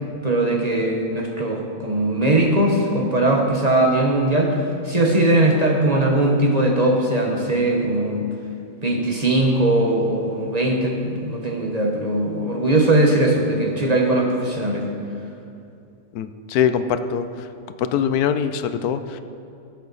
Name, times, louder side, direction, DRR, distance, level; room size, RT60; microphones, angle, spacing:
voice 1, 0.2-8.2 8.8-14.9, right 1 dB, 30° right, 0 dB, 1.2 m, -20 dB
voice 2, 16.1-17.5 17.8-19.2, left 8 dB, 85° left, 10 dB, 1.1 m, -23 dB
18.0 x 8.4 x 4.1 m, 2.6 s
omnidirectional pair, 1.6 m